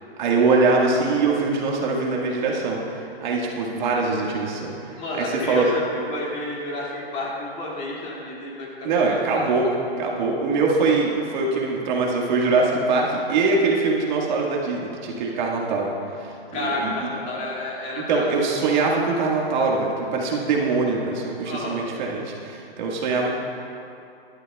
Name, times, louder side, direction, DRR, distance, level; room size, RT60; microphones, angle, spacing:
voice 1, 0.2-4.8 5.2-5.7 8.8-9.7 10.0-15.9 16.2-17.1 18.1-23.4, right 3 dB, 50° right, -2 dB, 1.7 m, -23 dB
voice 2, 5.0-9.5 16.5-18.5 21.4-21.8, left 2 dB, 25° left, -4 dB, 2.3 m, -31 dB
18.5 x 12.0 x 2.3 m, 2.7 s
hypercardioid pair, 145°, 31 cm